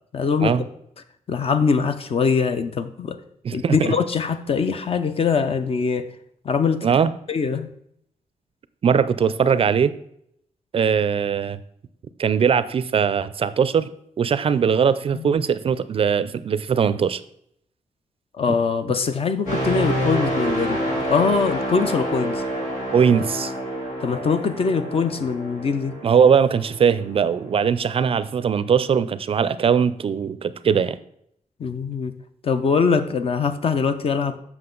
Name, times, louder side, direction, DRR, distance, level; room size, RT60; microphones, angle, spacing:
voice 1, 0.1-0.5 1.3-3.2 3.5-6.1 6.4-6.9 7.3-7.7 15.1-15.3 18.4-22.4 24.0-26.0 31.6-32.1 32.4-34.4, left 5 dB, 45° left, 10 dB, 0.6 m, -22 dB
voice 2, 3.4-3.9 6.8-7.1 8.8-9.9 10.7-11.6 12.2-13.9 14.2-17.2 18.5-18.6 22.9-23.5 26.0-31.0, right 7 dB, 45° right, 15 dB, 0.4 m, -20 dB
sound 1, 19.5-27.3 27.7-28.0, right 1 dB, 80° left, 2.9 m, -28 dB
7.6 x 6.0 x 3.8 m, 0.72 s
wide cardioid pair, 115°, 13 cm